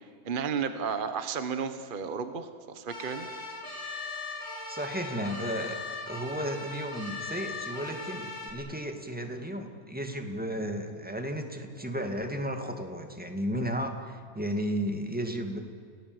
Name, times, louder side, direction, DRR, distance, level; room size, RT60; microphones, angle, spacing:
voice 1, 0.2-3.3, right 6 dB, 35° right, 9 dB, 1.3 m, -33 dB
sound 1, 2.9-8.5, left 3 dB, 40° left, 4.4 m, -39 dB
voice 2, 4.7-5.8 6.1-15.6, equal, 5° right, 5 dB, 2.0 m, -34 dB
30.0 x 19.0 x 7.9 m, 2.2 s
omnidirectional pair, 1.6 m